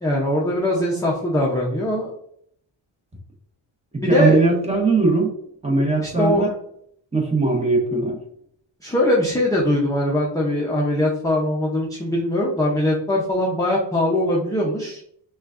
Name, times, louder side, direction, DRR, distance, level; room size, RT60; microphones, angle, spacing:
voice 1, 0.0-2.1 4.0-4.4 6.0-6.5 8.8-15.0, left 1 dB, 10° left, -3 dB, 0.5 m, -21 dB
voice 2, 4.0-5.3 5.6-6.5 7.1-8.2, right 3 dB, 15° right, 0 dB, 1.0 m, -19 dB
6.0 x 2.3 x 2.4 m, 0.68 s
cardioid pair, 125°, 46 cm